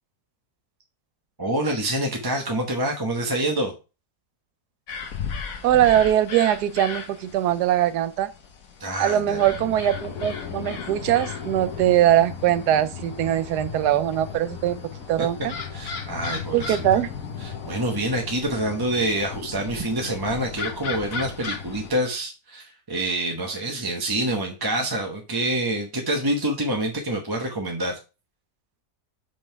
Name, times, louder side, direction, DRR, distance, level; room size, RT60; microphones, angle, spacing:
voice 1, 1.4-3.7 8.8-9.4 15.2-15.3 15.7-16.7 17.4-28.0, right 1 dB, 20° right, 0.7 m, -26 dB
sound 1, 4.9-21.9, left 6 dB, 60° left, 1.3 m, -35 dB
voice 2, 5.6-8.3 9.0-14.8 15.1-15.5 16.5-17.1, right 12 dB, 85° right, 1.2 m, -21 dB
5.5 x 5.1 x 4.5 m
omnidirectional pair, 1.7 m